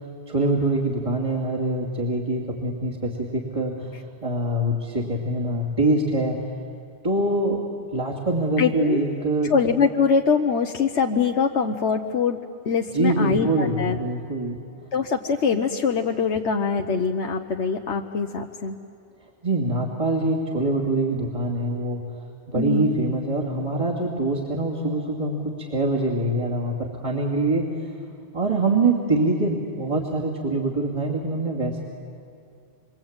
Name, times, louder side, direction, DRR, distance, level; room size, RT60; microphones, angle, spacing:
voice 1, 0.3-6.3 7.0-9.5 12.9-14.6 19.4-22.0 22.5-27.7 28.3-31.8, right 2 dB, 30° right, -4 dB, 2.7 m, -24 dB
voice 2, 8.6-9.0 9.4-14.0 14.9-18.8 22.6-22.9, left 5 dB, 75° left, 2 dB, 1.3 m, -23 dB
27.0 x 24.0 x 8.9 m, 2.4 s
omnidirectional pair, 1.2 m